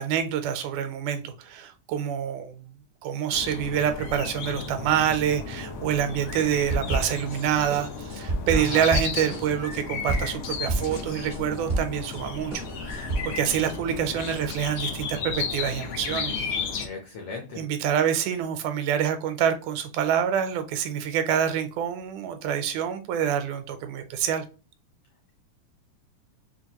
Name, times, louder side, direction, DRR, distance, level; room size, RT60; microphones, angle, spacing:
voice 1, 0.0-2.7 3.0-16.4 17.6-24.5, right 9 dB, 85° right, 2.0 m, -27 dB
sound 1, 3.3-16.9, left 5 dB, 90° left, 1.1 m, -34 dB
sound 2, 6.7-7.4 7.7-12.2 12.5-13.2, right 2 dB, 60° right, 0.7 m, -29 dB
voice 2, 8.5-8.9 16.8-17.6, left 3 dB, 70° left, 1.4 m, -36 dB
5.6 x 2.5 x 2.9 m
omnidirectional pair, 3.5 m